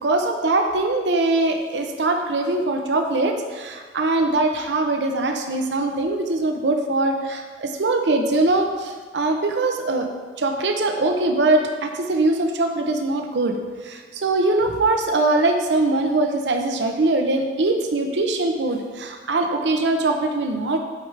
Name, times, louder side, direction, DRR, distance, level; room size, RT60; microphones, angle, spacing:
voice 1, 0.0-10.1 10.4-13.5 13.8-20.8, right 2 dB, 80° right, 4 dB, 0.6 m, -22 dB
8.6 x 4.8 x 3.3 m, 1.5 s
head